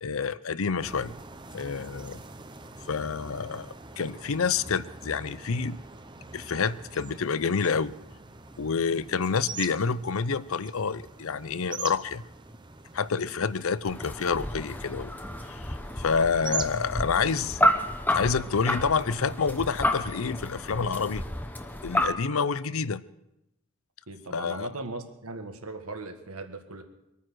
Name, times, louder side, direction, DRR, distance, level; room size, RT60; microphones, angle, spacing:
voice 1, 0.0-1.2 1.5-2.2 2.9-5.8 6.3-7.9 8.6-12.2 12.9-15.1 16.0-17.6 18.1-21.2 21.8-23.0 24.3-24.7, left 5 dB, 70° left, 0.6 m, -28 dB
sound 1, 0.8-17.5, right 4 dB, 20° right, 0.7 m, -43 dB
sound 2, 13.9-22.1, left 1 dB, 10° left, 0.9 m, -30 dB
voice 2, 24.1-26.8, right 2 dB, 80° right, 1.6 m, -38 dB
24.0 x 9.3 x 6.3 m
head